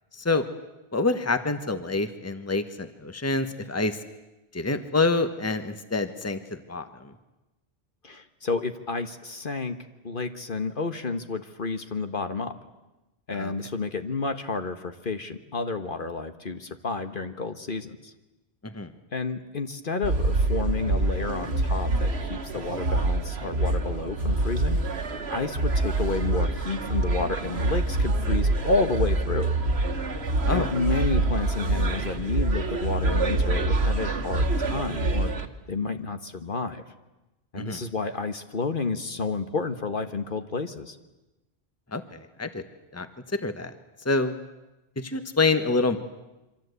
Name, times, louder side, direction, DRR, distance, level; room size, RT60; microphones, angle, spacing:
voice 1, 0.1-0.4 0.9-4.0 4.5-7.1 13.3-13.5 18.6-18.9 30.5-30.7 37.6-37.8 41.9-42.6 42.9-43.1 43.4-43.7 44.0-44.3 45.0-46.0, left 3 dB, 15° left, 9 dB, 1.2 m, -27 dB
voice 2, 8.0-9.8 10.0-12.5 13.3-18.1 19.1-24.8 25.3-29.5 30.1-30.2 30.5-35.3 35.7-36.8 37.5-41.0, left 3 dB, 55° left, 8 dB, 1.4 m, -30 dB
sound 1, 20.0-35.5, right 2 dB, 75° right, 1.8 m, -26 dB
27.0 x 25.0 x 8.2 m, 1.0 s
omnidirectional pair, 1.1 m